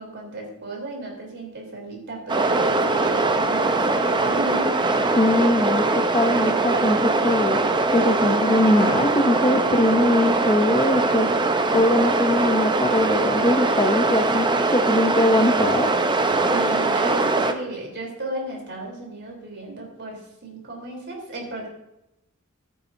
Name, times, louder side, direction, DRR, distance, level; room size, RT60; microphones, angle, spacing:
voice 1, 0.0-4.8 16.4-21.7, right 2 dB, 55° right, -1 dB, 3.4 m, -34 dB
sound 1, 2.3-17.5, right 3 dB, 20° right, 0.6 m, -21 dB
voice 2, 5.1-7.6 7.9-11.3 11.7-15.9, left 1 dB, 25° left, 4 dB, 0.6 m, -21 dB
13.0 x 9.5 x 2.6 m, 0.87 s
head